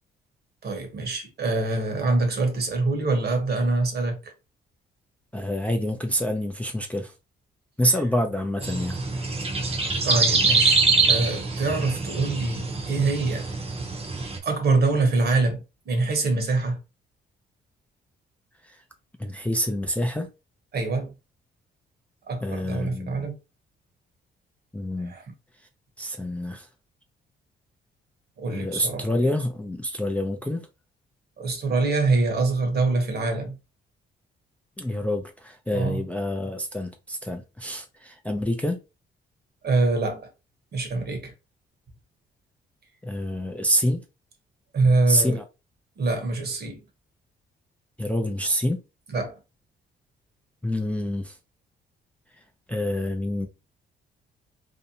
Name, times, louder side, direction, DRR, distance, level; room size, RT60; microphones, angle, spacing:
voice 1, 0.6-4.3 10.0-10.8 11.1-13.5 14.4-16.8 20.7-21.1 22.3-23.3 25.0-25.2 28.4-29.1 31.4-33.6 35.7-36.0 39.6-40.3 40.7-41.3 44.7-45.4 46.0-46.8 49.1-49.4, right 3 dB, 55° right, 1.0 m, -24 dB
voice 2, 5.3-7.1 7.8-9.0 18.6-18.8 19.2-20.3 22.4-23.3 24.7-25.1 26.0-26.7 28.5-30.6 34.8-38.8 43.0-44.0 45.1-45.4 48.0-48.8 50.6-51.4 52.7-53.5, equal, 5° left, 0.4 m, -27 dB
sound 1, 8.6-14.4, right 4 dB, 30° right, 0.7 m, -24 dB
2.6 x 2.1 x 2.7 m
cardioid pair, 90°, 20 cm